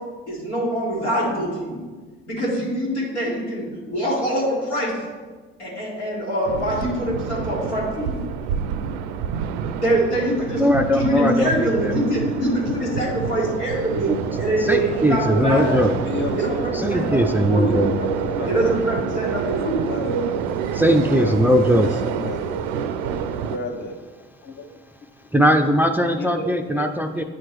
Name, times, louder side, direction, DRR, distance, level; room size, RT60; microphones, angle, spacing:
voice 1, 0.3-1.8 2.3-4.9 5.6-8.2 9.8-10.6 11.0-14.1 14.4-16.0 16.3-17.7 18.5-20.1, right 1 dB, 90° left, -6 dB, 1.9 m, -24 dB
sound 1, 6.5-23.6, right 7 dB, 70° right, 0.5 m, -28 dB
voice 2, 10.6-11.9 13.9-14.2 14.6-15.9 16.7-17.9 20.7-21.9 25.3-27.2, equal, 5° right, 6 dB, 0.4 m, -19 dB
voice 3, 15.0-16.7 17.5-18.8 19.0-19.6 20.0-20.1 21.1-22.6 23.4-24.0 24.4-24.7 26.2-26.9 27.1-27.2, left 2 dB, 35° left, 5 dB, 0.8 m, -33 dB
9.3 x 4.5 x 3.2 m, 1.4 s
figure-of-eight pair, 50°, 34 cm